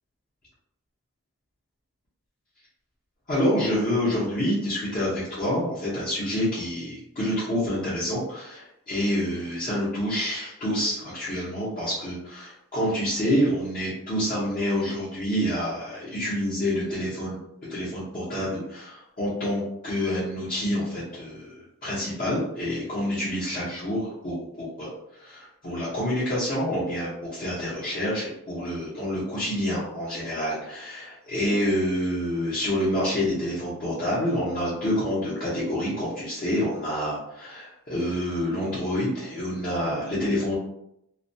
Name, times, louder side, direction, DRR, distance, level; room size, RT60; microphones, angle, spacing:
voice 1, 3.3-17.4 17.7-24.9 25.2-40.5, equal, 40° left, -9 dB, 0.8 m, -27 dB
2.3 x 2.2 x 2.6 m, 0.79 s
head